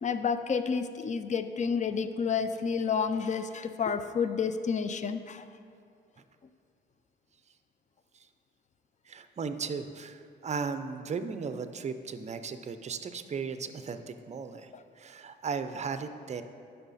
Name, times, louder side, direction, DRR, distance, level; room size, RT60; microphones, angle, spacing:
voice 1, 0.0-5.4 14.7-14.8, left 6 dB, 35° left, 11 dB, 0.5 m, -30 dB
voice 2, 9.1-14.7 15.0-16.4, right 5 dB, 35° right, 10 dB, 0.5 m, -36 dB
11.0 x 5.7 x 4.1 m, 2.4 s
cardioid pair, 90°, 20 cm